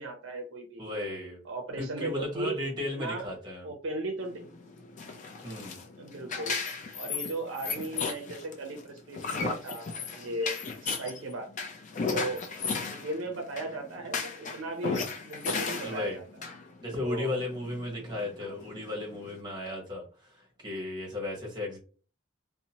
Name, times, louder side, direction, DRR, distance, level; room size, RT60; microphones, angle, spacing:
voice 1, 0.0-0.9 1.4-2.6 2.9-3.3 3.6-4.5 6.0-6.5 6.9-11.5 12.0-12.5 12.8-16.2 17.0-17.4 18.4-18.6, right 2 dB, 65° right, 3 dB, 0.5 m, -36 dB
voice 2, 0.8-1.4 1.8-3.7 5.4-5.8 12.0-12.4 15.8-16.2 16.8-21.8, left 2 dB, 20° right, -1 dB, 1.0 m, -35 dB
sound 1, 4.2-19.4, left 4 dB, 35° left, 0.4 m, -36 dB
2.7 x 2.0 x 2.8 m, 0.38 s
head